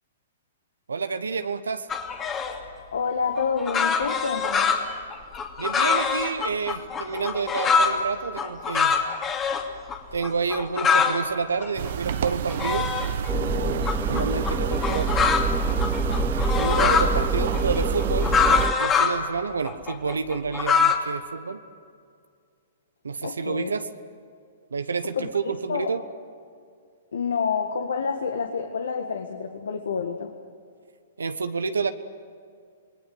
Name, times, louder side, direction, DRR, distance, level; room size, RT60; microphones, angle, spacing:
voice 1, 0.9-1.9 5.6-9.0 10.1-12.9 13.3-15.1 16.5-21.6 23.0-23.9 24.7-26.0 31.2-31.9, right 5 dB, 80° right, 10 dB, 1.2 m, -29 dB
sound 1, 1.9-2.6 3.3-8.0 8.4-9.6 9.9-10.0 10.2-11.2 11.6-13.3 13.8-17.1 17.5-19.2 19.6-21.0, left 6 dB, 20° left, 2.7 m, -24 dB
voice 2, 2.9-4.7 23.2-23.7 25.2-25.3 25.7-25.9 27.1-30.3, left 5 dB, 70° left, 5 dB, 1.7 m, -28 dB
sound 2, 11.8-18.7, right 9 dB, 60° right, 1.0 m, -29 dB
sound 3, 13.3-18.7, right 1 dB, 5° right, 0.9 m, -27 dB
27.5 x 20.5 x 8.0 m, 2.3 s
figure-of-eight pair, 115°, 0 cm